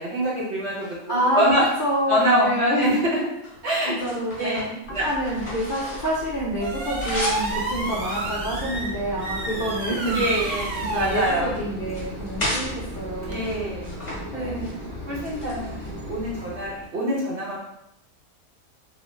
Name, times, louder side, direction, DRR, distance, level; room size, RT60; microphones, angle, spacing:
voice 1, 0.0-1.6 2.1-3.2 3.6-3.9 4.4-5.0 10.1-10.7 11.0-11.5 13.3-13.8 14.1-14.6 15.1-17.6, equal, 55° right, -6 dB, 1.0 m, -25 dB
voice 2, 1.1-1.5 1.8-2.9 3.9-10.2 10.8-13.5 14.3-14.8, equal, 60° left, -7 dB, 0.5 m, -27 dB
sound 1, 1.2-2.2 2.8-6.3 6.6-7.5 8.0-9.3 9.7-11.4 11.8-12.7 13.3-14.2 14.5-14.7 15.1-16.1, left 1 dB, 30° left, 1.0 m, -35 dB
sound 2, 4.8-13.4, right 2 dB, 75° right, 0.5 m, -32 dB
Mechanisms, 6.0-16.9, left 1 dB, 15° left, 0.8 m, -37 dB
2.9 x 2.0 x 3.1 m, 0.82 s
omnidirectional pair, 1.6 m